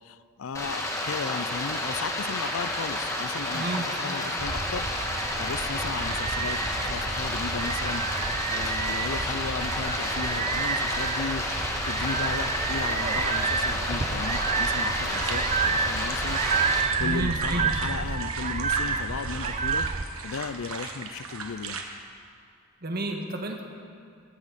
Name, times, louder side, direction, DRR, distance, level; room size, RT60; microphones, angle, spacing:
voice 1, 0.0-4.9 5.4-8.0 8.5-16.4 17.0-19.9 20.2-21.8, left 5 dB, 70° left, 15 dB, 0.5 m, -35 dB
Stream, 0.5-16.8, left 1 dB, 15° left, 1.5 m, -30 dB
voice 2, 3.5-3.8 17.0-17.7 22.8-23.6, right 2 dB, 45° right, 2 dB, 1.5 m, -30 dB
sound 1, 4.4-20.0, right 5 dB, 30° right, 0.5 m, -29 dB
sound 2, 14.8-21.8, right 4 dB, 80° right, 1.4 m, -38 dB
17.5 x 14.0 x 4.1 m, 2.3 s
head